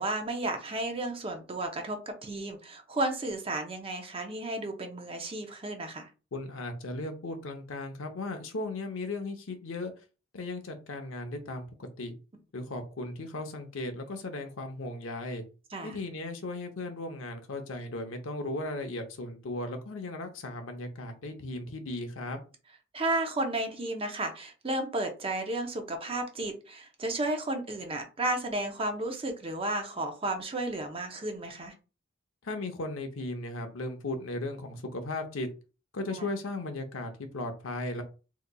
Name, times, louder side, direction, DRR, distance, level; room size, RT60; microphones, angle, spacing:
voice 1, 0.0-6.1 15.7-16.0 22.9-31.7, right 2 dB, 30° right, 0.6 m, -33 dB
voice 2, 6.3-9.9 10.3-12.1 12.5-15.4 15.8-22.4 32.4-35.5 35.9-38.0, left 2 dB, 75° left, 0.7 m, -36 dB
3.8 x 2.9 x 2.2 m
head